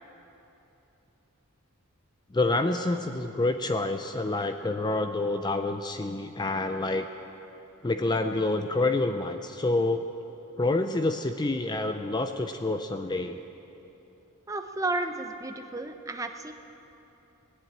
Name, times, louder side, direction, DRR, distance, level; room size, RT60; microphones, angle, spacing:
voice 1, 2.3-7.1 7.8-10.1 10.6-13.4, left 2 dB, 20° left, 7 dB, 0.5 m, -27 dB
voice 2, 14.5-16.5, right 2 dB, 15° right, 6 dB, 0.7 m, -32 dB
20.0 x 7.7 x 8.8 m, 3.0 s
head